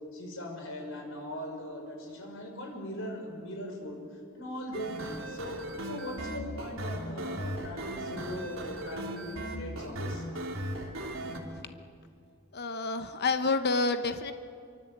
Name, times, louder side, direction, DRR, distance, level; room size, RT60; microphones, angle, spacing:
voice 1, 0.1-4.0 4.3-10.2, left 1 dB, 70° left, 2 dB, 5.7 m, -40 dB
sound 1, 4.7-11.4, right 1 dB, 75° right, 3.3 m, -37 dB
voice 2, 12.5-14.3, left 3 dB, 50° left, 9 dB, 1.0 m, -28 dB
26.0 x 24.5 x 8.1 m, 2.4 s
head